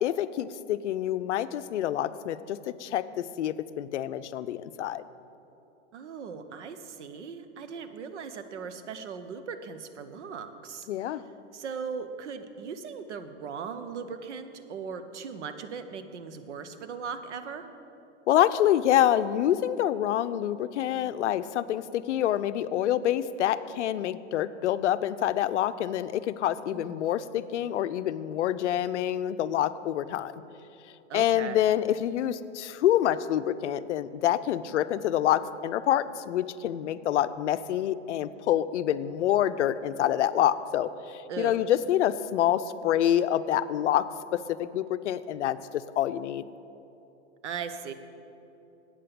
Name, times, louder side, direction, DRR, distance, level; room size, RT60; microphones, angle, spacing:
voice 1, 0.0-5.0 10.9-11.2 18.3-30.3 31.1-44.1 44.6-46.4, left 11 dB, 80° left, 14 dB, 0.5 m, -27 dB
voice 2, 5.9-11.2 11.5-17.7 26.7-27.0 31.1-31.6 41.3-41.6 47.4-47.9, right 6 dB, 75° right, 9 dB, 0.9 m, -38 dB
8.6 x 7.6 x 6.9 m, 2.9 s
hypercardioid pair, 115°, 35 cm